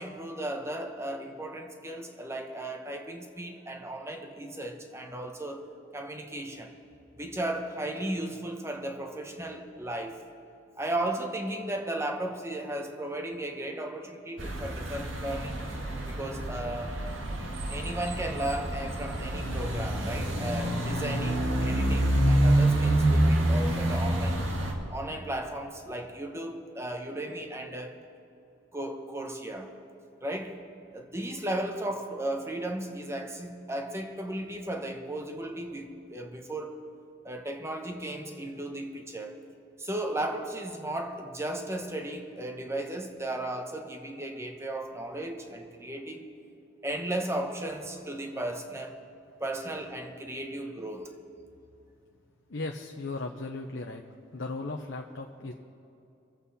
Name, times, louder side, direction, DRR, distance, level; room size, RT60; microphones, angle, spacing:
voice 1, 0.0-6.7 7.2-10.2 10.8-15.6 16.1-17.0 17.7-24.4 24.9-28.0 28.7-29.7 30.2-30.6 30.9-36.8 37.2-39.4 39.8-46.3 46.8-49.0 49.4-51.2, right 1 dB, 15° right, 4 dB, 1.1 m, -35 dB
sound 1, 14.4-24.7, right 1 dB, 85° right, 1.7 m, -27 dB
voice 2, 52.5-54.0 54.3-55.5, left 3 dB, 70° left, 2 dB, 0.8 m, -36 dB
24.0 x 8.1 x 4.2 m, 2.7 s
head